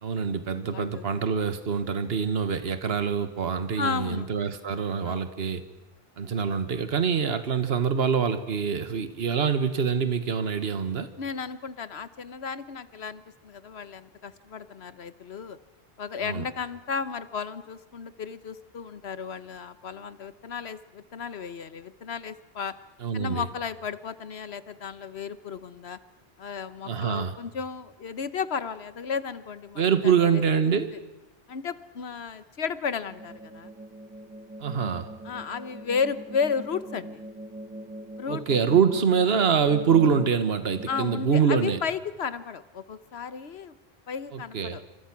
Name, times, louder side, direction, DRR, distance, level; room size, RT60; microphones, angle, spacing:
voice 1, 0.0-5.6 6.2-11.1 16.2-16.4 23.0-23.4 26.9-27.3 29.8-30.9 34.6-35.1 38.3-41.8 44.3-44.8, right 6 dB, 75° right, 11 dB, 1.5 m, -25 dB
voice 2, 0.7-1.1 3.8-4.3 5.0-5.2 11.2-15.6 16.0-22.7 23.1-26.0 26.4-30.4 31.5-33.7 35.2-37.3 38.2-38.4 38.7-38.8 40.9-43.7 44.1-44.8, left 6 dB, 80° left, 14 dB, 1.3 m, -34 dB
sound 1, 33.1-41.2, right 1 dB, 10° right, 1.2 m, -42 dB
27.5 x 25.5 x 6.1 m, 0.99 s
omnidirectional pair, 1.1 m